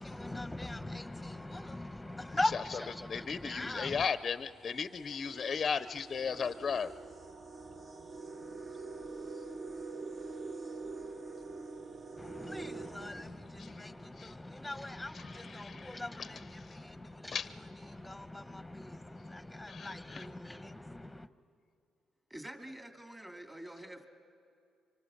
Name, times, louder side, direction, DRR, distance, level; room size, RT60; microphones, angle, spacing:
voice 1, 0.0-4.0 12.2-21.3, left 2 dB, 10° left, 12 dB, 1.0 m, -41 dB
sound 1, 2.7-2.9 3.8-3.9 4.3-14.1, right 3 dB, 40° right, 1.1 m, -45 dB
voice 2, 3.1-6.9 13.6-13.9 14.2-14.3 15.1-16.3 16.6-16.8 17.3-17.5 19.7-20.3, left 6 dB, 40° left, 13 dB, 0.6 m, -36 dB
voice 3, 22.3-24.1, right 1 dB, 15° right, 4 dB, 2.6 m, -47 dB
25.5 x 24.5 x 6.5 m, 2.4 s
cardioid pair, 90°, 0 cm